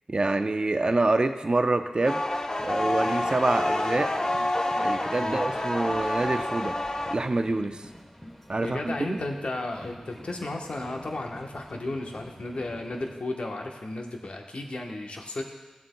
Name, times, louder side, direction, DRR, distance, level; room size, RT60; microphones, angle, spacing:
voice 1, 0.1-2.2 2.6-4.1 4.8-6.8 7.1-7.8 8.5-9.2, right 2 dB, 45° right, 7 dB, 0.6 m, -26 dB
sound 1, 2.0-7.1, left 1 dB, 35° left, 0.7 m, -28 dB
sound 2, 2.6-13.1, equal, 15° left, 1.1 m, -48 dB
voice 2, 8.6-15.4, left 2 dB, 65° left, 2 dB, 1.1 m, -34 dB
15.0 x 7.6 x 2.2 m, 1.2 s
cardioid pair, 45°, 2 cm